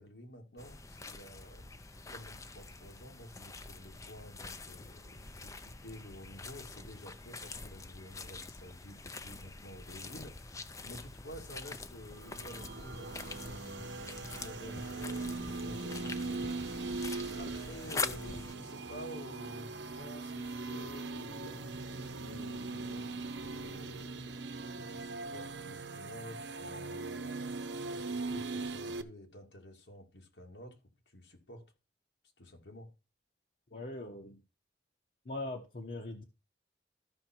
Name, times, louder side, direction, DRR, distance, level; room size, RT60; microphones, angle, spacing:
voice 1, 0.0-1.8 2.1-17.0 17.3-24.5 24.8-27.6 27.9-30.8 31.1-31.6 32.4-32.9, left 1 dB, 90° left, 2.2 m, -51 dB
sound 1, 0.6-18.5, left 3 dB, 20° left, 0.5 m, -45 dB
sound 2, 12.1-29.0, right 3 dB, 90° right, 0.8 m, -40 dB
voice 2, 33.7-34.4 35.2-36.2, left 2 dB, 50° left, 1.0 m, -41 dB
13.0 x 5.9 x 4.4 m
head